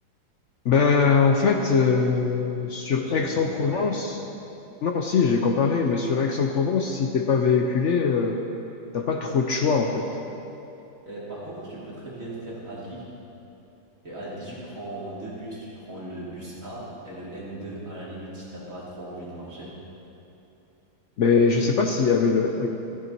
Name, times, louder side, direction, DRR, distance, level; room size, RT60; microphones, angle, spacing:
voice 1, 0.6-4.2 4.8-8.4 8.9-10.1 21.2-22.7, left 5 dB, 85° left, 3 dB, 0.6 m, -22 dB
voice 2, 3.0-4.0 11.1-13.1 14.0-19.7, right 1 dB, 45° right, -7 dB, 3.1 m, -38 dB
14.5 x 11.0 x 4.5 m, 2.9 s
omnidirectional pair, 2.1 m